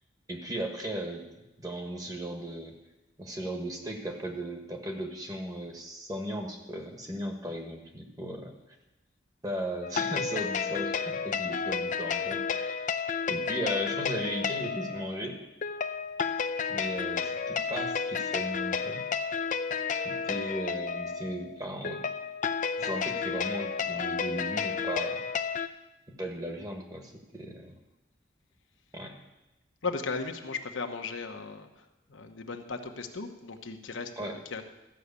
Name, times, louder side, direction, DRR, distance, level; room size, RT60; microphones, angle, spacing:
voice 1, 0.3-1.2 1.6-2.7 3.2-8.5 9.4-12.8 13.3-15.4 16.7-19.1 20.0-22.1 22.8-25.2 26.1-27.8 28.9-29.2 34.2-34.4, equal, 20° right, 3 dB, 1.3 m, -36 dB
sound 1, 9.8-25.7, left 6 dB, 40° left, 0.5 m, -31 dB
voice 2, 29.8-34.6, left 4 dB, 85° left, 5 dB, 1.1 m, -37 dB
13.0 x 6.3 x 8.3 m, 0.99 s
head